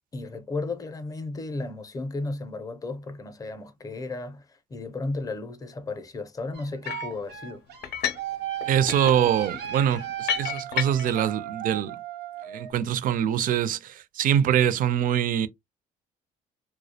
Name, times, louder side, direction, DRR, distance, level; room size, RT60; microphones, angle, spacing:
voice 1, 0.1-7.6, left 3 dB, 20° left, 0.5 m, -34 dB
sound 1, 6.5-12.7, right 11 dB, 80° right, 0.7 m, -35 dB
sound 2, 6.8-7.2 7.8-8.3 8.6-11.2, left 10 dB, 75° left, 0.4 m, -31 dB
voice 2, 8.7-11.9 12.5-15.5, right 10 dB, 55° right, 0.4 m, -24 dB
2.3 x 2.0 x 2.7 m
cardioid pair, 110°, 17 cm